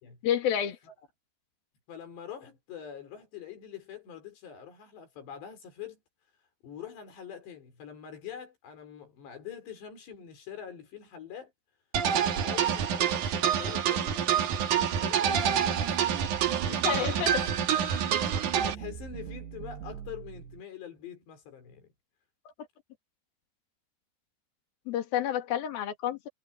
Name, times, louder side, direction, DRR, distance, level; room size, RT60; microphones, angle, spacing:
voice 1, 0.2-0.8 16.7-17.4 24.9-26.3, left 10 dB, 65° left, 3.9 m, -29 dB
voice 2, 1.9-6.0 6.6-11.5 12.1-14.2 14.6-16.1 16.7-17.5 18.4-21.9, left 8 dB, 90° left, 6.6 m, -44 dB
sound 1, 11.9-18.7, right 8 dB, 55° right, 2.8 m, -27 dB
sound 2, 15.3-20.6, right 10 dB, 80° right, 3.4 m, -41 dB
omnidirectional pair, 4.8 m